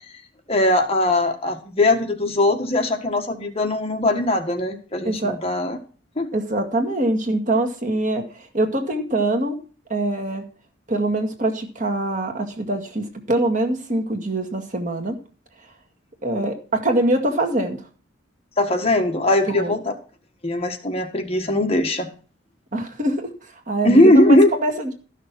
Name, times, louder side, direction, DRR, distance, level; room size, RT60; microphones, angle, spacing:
voice 1, 0.5-5.8 6.1-6.3 18.6-19.9 20.4-22.1 23.8-24.5, left 1 dB, 30° left, 4 dB, 1.6 m, -19 dB
voice 2, 5.0-5.4 6.3-9.6 9.9-10.4 10.9-15.2 16.2-17.8 19.5-19.8 22.7-23.3 23.7-24.9, right 1 dB, 45° right, 3 dB, 2.0 m, -23 dB
13.5 x 6.5 x 6.1 m, 0.38 s
head